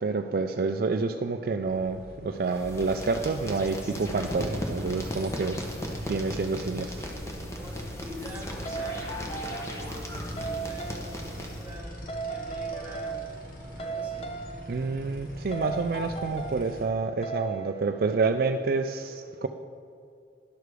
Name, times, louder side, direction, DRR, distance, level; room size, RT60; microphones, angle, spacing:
voice 1, 0.0-5.6 6.1-7.1 14.7-19.5, right 4 dB, 55° right, 7 dB, 0.4 m, -28 dB
sound 1, 1.6-16.9, equal, 55° left, 1.3 m, -44 dB
sound 2, 2.4-11.8, equal, 15° left, 1.0 m, -37 dB
voice 2, 7.6-13.2 13.7-14.3, equal, 10° right, -2 dB, 1.8 m, -45 dB
sound 3, 7.7-7.8 8.7-9.9 10.4-11.1 12.1-13.5 13.8-14.7 15.5-16.7 17.2-17.8, right 4 dB, 35° left, 0.5 m, -36 dB
11.0 x 6.7 x 4.7 m, 2.4 s
head